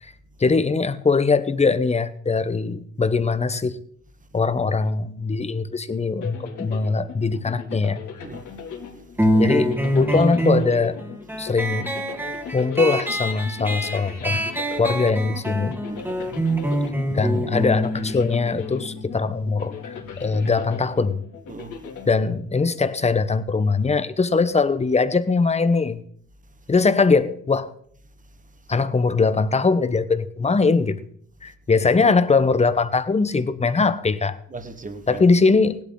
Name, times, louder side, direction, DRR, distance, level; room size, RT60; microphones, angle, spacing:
voice 1, 0.4-3.8 4.3-8.0 9.4-11.0 11.4-11.9 12.5-14.4 14.8-15.7 17.1-21.2 22.1-26.0 26.7-27.7 28.7-31.0 31.4-34.4 35.1-35.8, left 4 dB, 20° left, 1.0 m, -21 dB
sound 1, 6.2-22.8, left 6 dB, 80° left, 2.8 m, -39 dB
voice 2, 8.2-9.4 11.4-11.5 12.3-12.6 15.9-16.9 20.2-20.3 21.5-22.1 26.4-26.7 28.0-28.8 31.4-31.5 34.5-35.2, right 3 dB, 25° right, 1.7 m, -42 dB
sound 2, 9.2-20.3, right 1 dB, 5° right, 1.8 m, -26 dB
17.0 x 12.0 x 3.9 m
cardioid pair, 90°, 30 cm